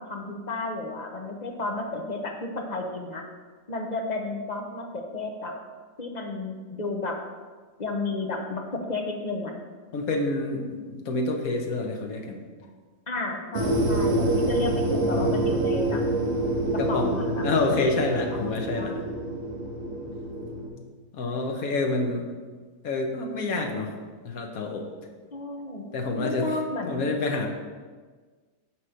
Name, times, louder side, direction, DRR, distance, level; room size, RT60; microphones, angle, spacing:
voice 1, 0.0-3.2 3.7-5.5 6.0-7.2 7.8-9.5 13.1-16.0 16.7-17.9 18.3-19.0 25.3-25.8 26.2-27.0, left 2 dB, 35° left, 1 dB, 0.8 m, -32 dB
voice 2, 9.9-12.4 16.8-18.9 20.8-20.9 21.1-22.3 22.8-23.9 24.2-24.9 25.9-26.5 26.8-27.5, left 2 dB, 80° left, 2 dB, 1.4 m, -28 dB
sound 1, 13.5-20.7, right 1 dB, 60° right, 1.3 m, -26 dB
9.1 x 3.2 x 6.4 m, 1.4 s
omnidirectional pair, 1.5 m